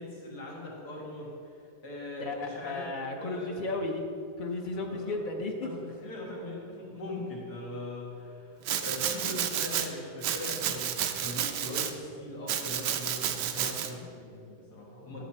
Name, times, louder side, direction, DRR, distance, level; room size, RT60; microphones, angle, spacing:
voice 1, 0.0-1.5 1.8-2.9 3.2-3.7 4.8-5.2 5.6-15.2, left 1 dB, 60° left, -4 dB, 2.4 m, -40 dB
voice 2, 2.2-4.0 4.4-5.5 6.0-6.1, left 2 dB, 90° left, 1 dB, 0.4 m, -34 dB
Domestic sounds home sounds, 8.6-9.9 10.2-11.9 12.5-13.9, right 9 dB, 75° right, 1.2 m, -31 dB
11.5 x 6.4 x 4.3 m, 2.6 s
omnidirectional pair, 1.9 m